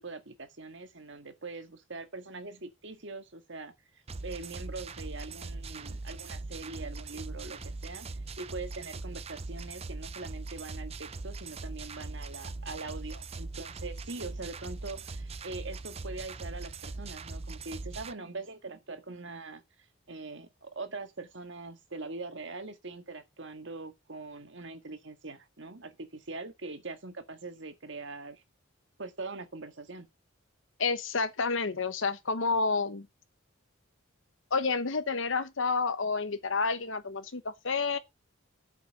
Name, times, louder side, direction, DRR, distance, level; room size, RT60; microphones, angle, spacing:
voice 1, 0.0-19.6 20.1-28.4 29.0-30.1, right 3 dB, 60° right, 1.8 m, -42 dB
sound 1, 4.1-18.1, right 3 dB, 30° right, 0.6 m, -41 dB
voice 2, 30.8-33.1 34.5-38.0, left 4 dB, 70° left, 1.0 m, -29 dB
8.3 x 5.6 x 6.7 m
head